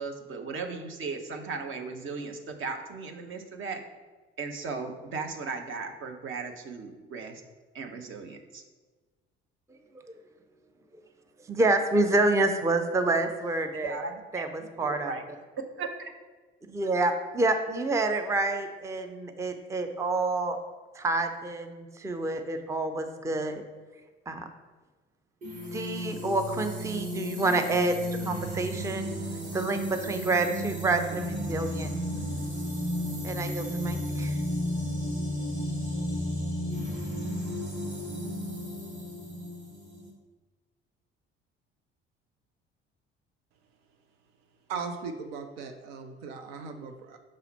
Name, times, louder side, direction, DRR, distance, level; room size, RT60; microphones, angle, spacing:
voice 1, 0.0-3.8 4.4-7.4 7.7-8.6 13.7-14.4 14.8-15.2 15.8-16.1, right 4 dB, 40° right, 5 dB, 0.9 m, -37 dB
voice 2, 11.5-14.0 14.3-15.1 16.7-20.6 21.0-23.6 24.3-24.4 25.7-27.9 28.3-29.1 29.5-31.9 33.2-34.4, right 2 dB, 10° right, 7 dB, 0.5 m, -28 dB
sound 1, 25.4-40.1, equal, 25° right, 1.7 m, -33 dB
voice 3, 44.7-47.2, right 5 dB, 70° right, 6 dB, 0.6 m, -38 dB
6.2 x 4.1 x 4.2 m, 1.3 s
figure-of-eight pair, 50°, 31 cm